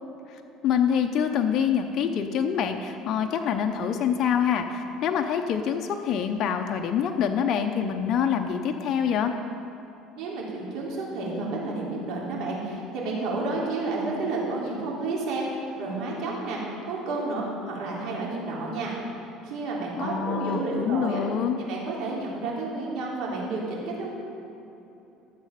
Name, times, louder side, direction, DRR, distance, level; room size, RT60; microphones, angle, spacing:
voice 1, 0.3-9.3 20.0-21.6, left 8 dB, 50° left, 4 dB, 0.7 m, -26 dB
voice 2, 10.2-16.6 16.9-19.0 19.4-21.2 21.7-24.1, right 3 dB, 60° right, -4 dB, 3.1 m, -31 dB
13.0 x 7.6 x 5.8 m, 3.0 s
cardioid pair, 125°, 0 cm